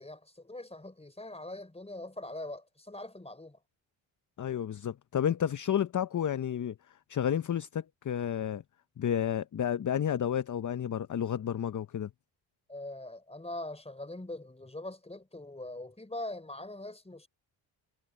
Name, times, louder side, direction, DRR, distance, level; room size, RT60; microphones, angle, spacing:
voice 1, 0.0-3.6 12.7-17.3, left 1 dB, 15° left, 4.2 m, -42 dB
voice 2, 4.4-6.7 7.1-8.6 9.0-12.1, left 9 dB, 40° left, 0.7 m, -31 dB
cardioid pair, 70°, 48 cm